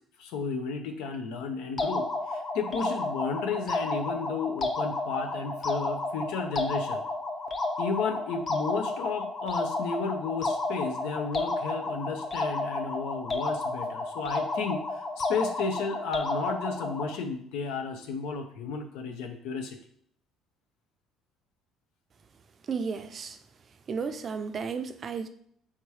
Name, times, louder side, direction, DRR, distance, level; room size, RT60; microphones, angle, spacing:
voice 1, 0.2-7.0 7.8-19.8, left 5 dB, 85° left, 5 dB, 0.7 m, -33 dB
sound 1, 1.8-17.2, left 2 dB, 30° left, 0.7 m, -31 dB
voice 2, 22.6-23.4 23.9-25.3, right 5 dB, 40° right, 8 dB, 0.4 m, -33 dB
3.6 x 2.9 x 4.7 m, 0.66 s
cardioid pair, 95°, 0 cm